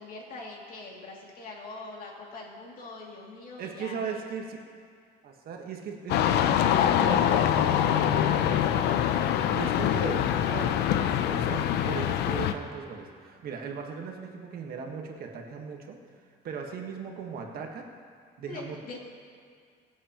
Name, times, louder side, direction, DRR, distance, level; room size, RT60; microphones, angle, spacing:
voice 1, 0.0-4.2 18.4-19.0, left 3 dB, 55° left, -2 dB, 2.6 m, -43 dB
voice 2, 3.6-4.6 5.2-16.0 16.4-17.8 18.4-18.8, right 6 dB, 65° right, 2 dB, 1.5 m, -38 dB
sound 1, 6.1-12.5, left 10 dB, 80° left, 0.6 m, -24 dB
23.0 x 8.2 x 3.0 m, 2.1 s
cardioid pair, 110°, 17 cm